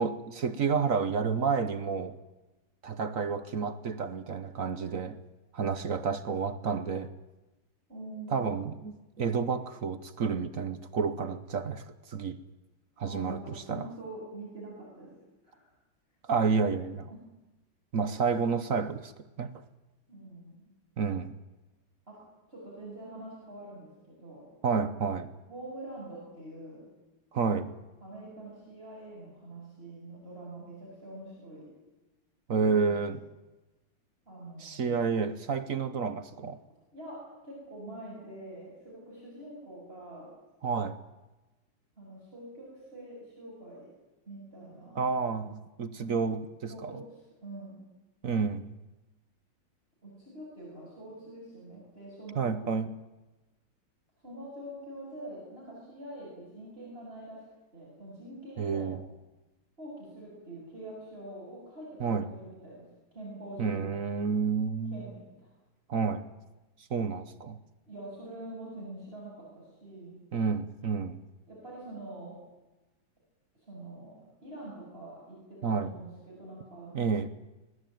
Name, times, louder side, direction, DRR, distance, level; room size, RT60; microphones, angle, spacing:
voice 1, 0.0-2.1 2.8-5.2 5.5-7.1 8.3-12.4 13.0-13.9 16.2-17.1 17.9-19.1 19.4-19.5 21.0-21.3 24.6-25.3 27.3-27.7 32.5-33.2 34.6-36.6 40.6-41.0 44.9-46.9 48.2-48.7 52.4-53.0 58.6-59.0 62.0-62.3 63.6-65.0 65.9-66.3 66.9-67.6 70.3-71.2 75.6-75.9 76.9-77.3, right 5 dB, 50° right, 1.2 m, -30 dB
voice 2, 7.9-8.5 13.1-15.1 15.4-15.7 17.1-17.2 20.1-20.6 22.1-22.2 22.5-24.5 25.5-26.9 28.0-31.7 34.3-35.0 36.9-40.3 42.0-43.9 44.3-45.1 46.7-47.8 50.0-52.6 54.2-57.4 57.7-59.0 59.8-64.0 64.9-65.5 67.9-70.2 71.5-72.4 73.7-74.2 74.4-77.0, right 1 dB, 25° right, 7.5 m, -45 dB
22.5 x 19.5 x 9.3 m
omnidirectional pair, 2.3 m